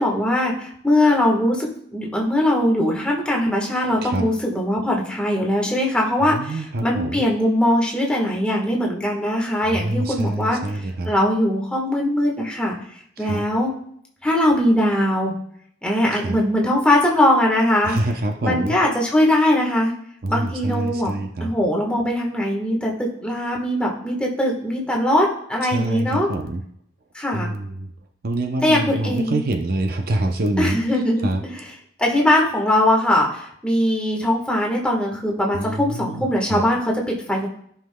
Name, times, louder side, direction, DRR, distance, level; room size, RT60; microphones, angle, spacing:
voice 1, 0.0-12.8 13.2-13.7 14.2-15.3 15.8-17.9 18.4-19.9 20.3-21.1 21.4-26.3 27.1-27.5 28.6-29.4 30.6-31.7 32.0-37.5, left 1 dB, 5° left, -2 dB, 1.3 m, -21 dB
voice 2, 6.3-7.2 9.6-11.1 13.2-13.4 16.1-16.4 17.8-18.8 20.2-21.5 25.6-26.6 27.3-27.9 28.2-30.8 31.2-31.4 35.5-36.6, right 1 dB, 50° right, 5 dB, 0.6 m, -26 dB
14.0 x 5.7 x 2.2 m, 0.67 s
head